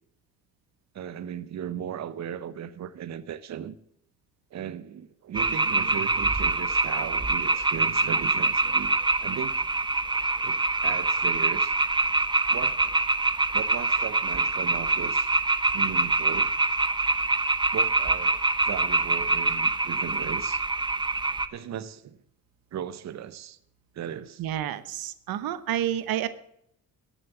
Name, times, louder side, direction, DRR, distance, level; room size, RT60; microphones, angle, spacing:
voice 1, 0.9-3.8 4.5-9.6 10.4-11.7 12.5-13.0 13.5-15.3 15.7-16.5 17.7-20.6 21.5-22.2 22.7-23.6 23.9-24.4, right 9 dB, 50° right, 0.7 m, -37 dB
sound 1, 5.3-21.5, right 3 dB, 15° right, 0.7 m, -25 dB
voice 2, 24.4-26.3, right 11 dB, 90° right, 0.9 m, -29 dB
13.5 x 7.2 x 7.1 m
cardioid pair, 100°, 35 cm